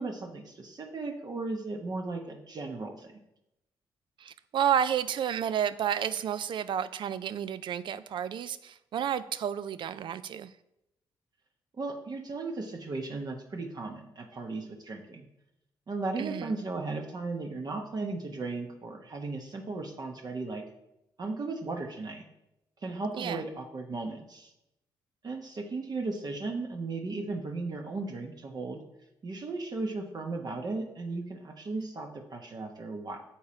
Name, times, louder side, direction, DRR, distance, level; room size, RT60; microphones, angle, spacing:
voice 1, 0.0-3.1 11.8-15.3 15.9-20.6 21.2-22.2 22.8-24.5 25.2-28.8 29.2-33.2, right 3 dB, 50° right, 3 dB, 1.1 m, -36 dB
voice 2, 4.2-10.5 16.2-16.5 23.2-23.4, right 9 dB, 65° right, 14 dB, 0.4 m, -31 dB
7.1 x 4.6 x 4.3 m, 0.85 s
supercardioid pair, 60°, 9 cm